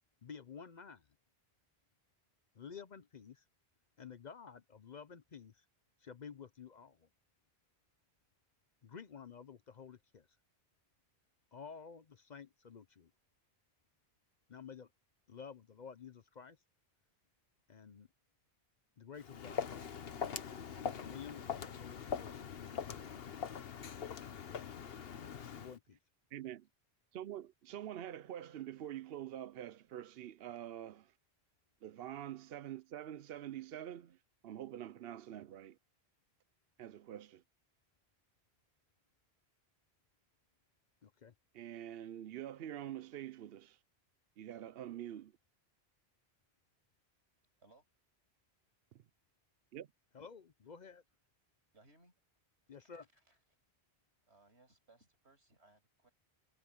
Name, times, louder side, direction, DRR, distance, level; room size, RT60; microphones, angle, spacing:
voice 1, 0.2-1.0 2.5-3.4 4.0-5.6 6.0-7.1 8.8-10.3 11.5-13.1 14.5-14.9 15.3-16.6 17.7-18.1 19.0-19.7 20.7-23.2 24.5-24.9 25.6-26.0 41.0-41.3 50.1-51.0 52.7-53.1, left 6 dB, 50° left, 0.7 m, -52 dB
Walk footsteps, 19.2-25.8, left 7 dB, 65° left, 1.1 m, -42 dB
voice 2, 26.3-26.7 27.1-31.1 31.8-35.8 36.8-37.4 41.5-43.8 44.4-45.3 49.7-49.9, right 11 dB, 70° right, 0.8 m, -46 dB
voice 3, 51.7-52.1 52.8-53.4 54.3-56.1, right 2 dB, 90° right, 6.8 m, -66 dB
omnidirectional pair, 1.1 m